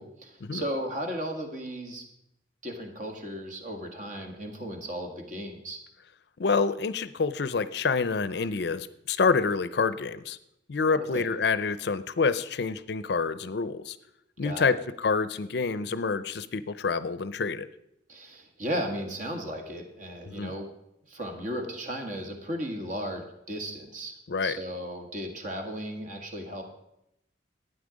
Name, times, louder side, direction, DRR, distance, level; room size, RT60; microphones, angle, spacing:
voice 1, 0.0-2.0 2.6-5.8 11.0-11.3 14.4-14.7 18.1-20.7 21.1-24.1 24.4-26.6, equal, 45° right, 3 dB, 1.8 m, -35 dB
voice 2, 6.4-10.4 10.7-14.0 14.4-17.7 20.3-20.5 24.3-24.6, left 4 dB, 65° left, 14 dB, 0.5 m, -27 dB
12.0 x 9.2 x 5.1 m, 0.82 s
head